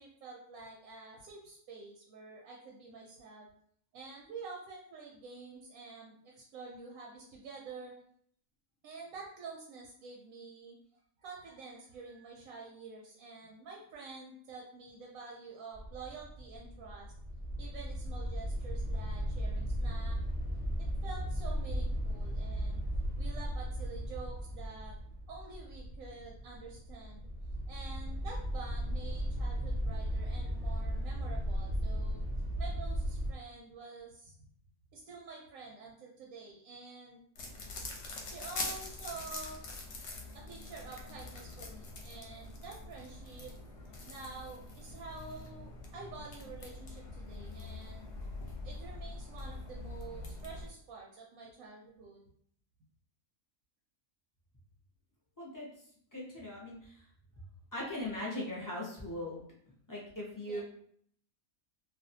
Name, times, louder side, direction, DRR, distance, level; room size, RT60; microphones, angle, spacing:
voice 1, 0.0-3.5 3.9-7.9 8.8-10.8 11.2-17.1 17.6-20.2 21.0-22.8 23.2-25.0 25.3-27.3 27.7-32.3 32.6-34.3 34.9-37.2 38.2-39.6 40.3-43.5 44.1-48.1 48.6-52.3 60.5-60.6, right 4 dB, 90° right, -2 dB, 1.0 m, -48 dB
sound 1, 15.7-33.4, equal, 50° right, 0.4 m, -36 dB
sound 2, 37.4-50.7, left 2 dB, 65° left, 0.8 m, -44 dB
voice 2, 56.1-57.1 57.7-59.4 59.9-60.6, left 1 dB, 25° left, -5 dB, 0.4 m, -39 dB
2.4 x 2.3 x 2.6 m, 0.63 s
omnidirectional pair, 1.4 m